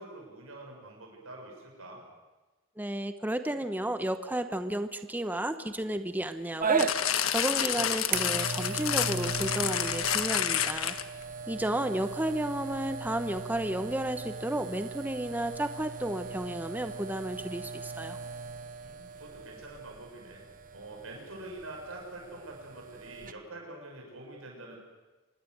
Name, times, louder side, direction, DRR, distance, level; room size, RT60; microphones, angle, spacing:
voice 1, 0.0-2.0 18.8-20.4 20.7-24.8, right 2 dB, 80° right, 0 dB, 6.7 m, -45 dB
voice 2, 2.8-10.9 11.5-18.2, right 1 dB, 10° right, 9 dB, 0.9 m, -32 dB
sound 1, 6.6-23.3, right 5 dB, 40° right, 1.1 m, -37 dB
sound 2, 6.8-11.2 12.0-12.1, left 9 dB, 85° left, 1.4 m, -29 dB
26.0 x 20.5 x 8.0 m, 1.2 s
head